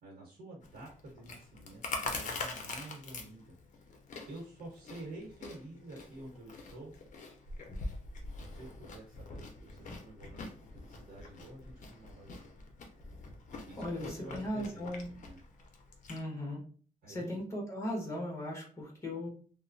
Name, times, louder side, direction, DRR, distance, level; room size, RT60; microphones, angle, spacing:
voice 1, 0.0-3.5 4.3-6.9 8.3-12.5 13.6-14.9 15.2-15.4 17.0-17.4, right 1 dB, 90° right, -3 dB, 0.9 m, -49 dB
Chewing mastication, 0.6-16.2, left 3 dB, 55° left, 0.5 m, -44 dB
voice 2, 13.8-15.1 16.1-16.6 17.1-19.3, left 1 dB, 20° left, -1 dB, 1.0 m, -37 dB
2.9 x 2.1 x 2.5 m, 0.42 s
wide cardioid pair, 140°, 15 cm